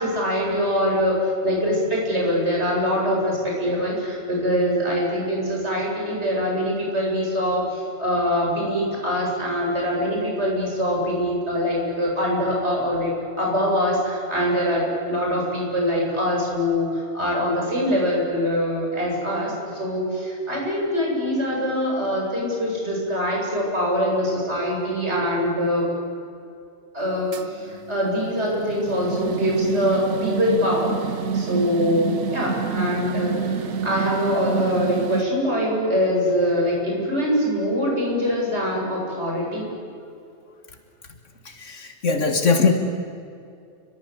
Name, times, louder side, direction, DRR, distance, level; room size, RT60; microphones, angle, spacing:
voice 1, 0.0-13.1 13.4-25.8 26.9-31.1 31.3-39.7, equal, 65° right, -2 dB, 8.5 m, -23 dB
sound 1, 27.3-35.2, right 6 dB, 80° right, 1.2 m, -28 dB
voice 2, 41.5-42.7, left 4 dB, 90° left, 5 dB, 2.4 m, -21 dB
29.5 x 24.0 x 8.4 m, 2.5 s
omnidirectional pair, 1.2 m